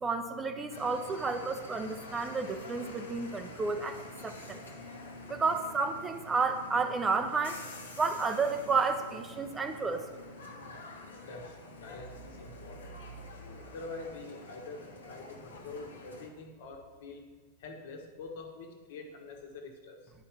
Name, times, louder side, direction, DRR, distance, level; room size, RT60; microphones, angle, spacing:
voice 1, 0.0-4.6 5.3-7.6 8.0-10.0, right 4 dB, 15° right, 7 dB, 0.8 m, -31 dB
sound 1, 0.7-16.3, left 2 dB, 70° left, 1.5 m, -48 dB
voice 2, 11.3-13.3 13.6-17.2 17.6-20.1, left 3 dB, 55° left, 2 dB, 1.7 m, -45 dB
10.5 x 5.8 x 7.1 m, 1.5 s
figure-of-eight pair, 90°, 0 cm